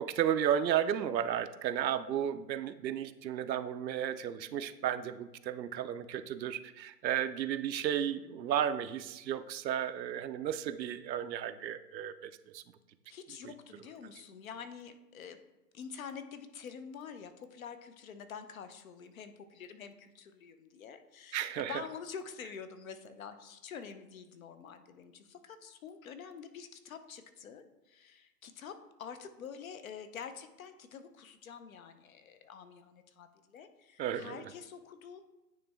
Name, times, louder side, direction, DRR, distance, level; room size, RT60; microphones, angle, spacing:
voice 1, 0.0-12.6 13.4-13.5 21.3-21.8 34.0-34.4, right 9 dB, 85° right, 12 dB, 0.6 m, -33 dB
voice 2, 13.1-15.4 15.7-28.7 29.0-35.2, left 7 dB, 55° left, 10 dB, 0.7 m, -47 dB
9.2 x 3.1 x 3.5 m, 1.0 s
hypercardioid pair, 150°, 50 cm